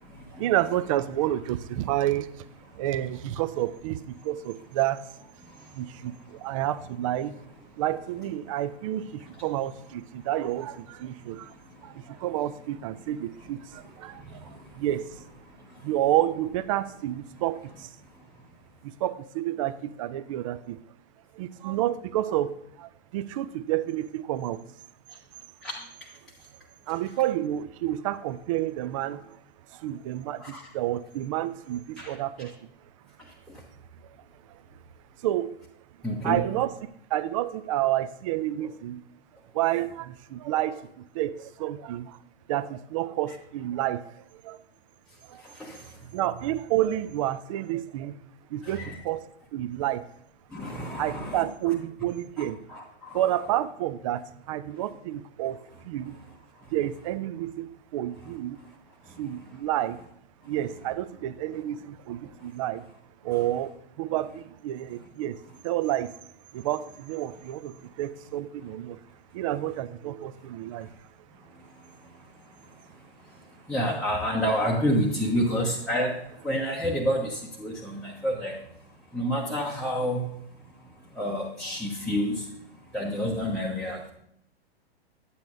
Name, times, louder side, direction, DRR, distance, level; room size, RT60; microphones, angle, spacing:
voice 1, 0.4-2.4 2.8-5.0 5.7-7.4 7.8-11.5 11.8-15.1 15.8-17.9 18.8-20.8 21.4-24.6 26.9-29.4 29.7-32.6 35.2-35.5 36.2-36.7 37.1-39.0 39.5-40.8 41.1-42.2 42.5-44.0 44.4-44.6 45.3-45.4 46.1-48.2 48.5-49.2 49.5-50.1 51.0-52.6 53.1-56.2 56.7-58.6 59.2-60.0 60.4-62.8 63.2-66.1 66.5-69.0 69.3-70.9, right 13 dB, 35° right, 14 dB, 0.4 m, -29 dB
voice 2, 36.0-36.6 45.6-45.8 48.7-49.0 50.5-51.7 52.4-53.2 73.7-76.2 76.4-78.5 79.1-80.2 81.2-82.4 82.9-84.1, equal, ahead, -5 dB, 0.8 m, -28 dB
9.2 x 8.1 x 2.6 m, 0.72 s
hypercardioid pair, 115°, 32 cm